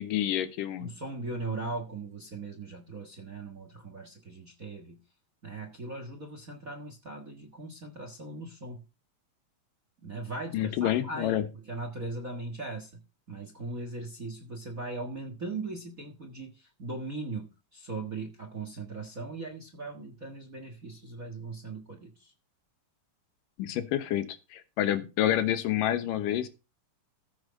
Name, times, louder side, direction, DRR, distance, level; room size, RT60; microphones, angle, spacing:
voice 1, 0.0-0.9 10.5-11.5 23.6-24.3 24.5-26.5, left 12 dB, 85° left, 2.8 m, -28 dB
voice 2, 0.8-5.0 5.4-8.8 10.0-13.0 13.3-22.3, right 3 dB, 40° right, 1.3 m, -39 dB
14.5 x 6.3 x 5.2 m
omnidirectional pair, 3.8 m